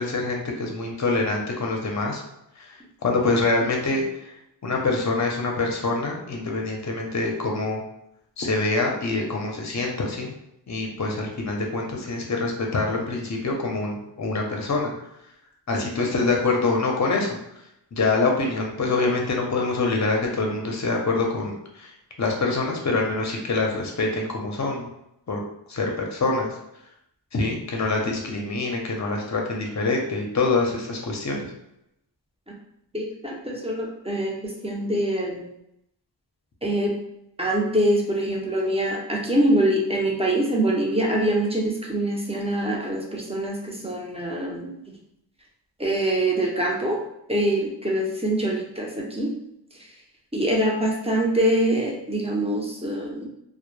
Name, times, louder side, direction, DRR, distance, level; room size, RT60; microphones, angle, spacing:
voice 1, 0.0-2.2 2.6-2.8 3.0-4.3 4.6-7.8 8.4-10.3 10.7-14.9 15.7-17.4 17.9-24.9 25.3-25.4 25.7-26.5 27.3-31.5, left 3 dB, 40° left, 1 dB, 0.6 m, -25 dB
voice 2, 32.9-35.5 36.6-36.9 37.4-45.0 45.8-47.0 47.3-49.3 50.3-53.3, right 1 dB, 15° right, -2 dB, 0.5 m, -24 dB
2.1 x 2.0 x 3.1 m, 0.81 s
wide cardioid pair, 60°, 44 cm